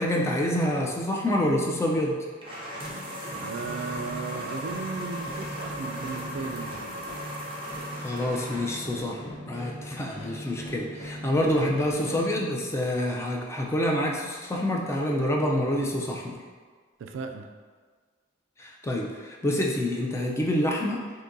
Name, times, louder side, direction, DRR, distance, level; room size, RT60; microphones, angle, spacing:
voice 1, 0.0-2.2 8.0-16.4 18.6-21.0, left 1 dB, 15° left, -1 dB, 0.3 m, -27 dB
sound 1, 2.4-9.0, equal, 30° right, 0.6 m, -37 dB
sound 2, 2.8-12.9, equal, 35° left, 0.7 m, -41 dB
voice 2, 3.4-6.8 17.0-17.5, right 5 dB, 80° right, 5 dB, 0.3 m, -36 dB
3.8 x 2.7 x 2.6 m, 1.5 s
head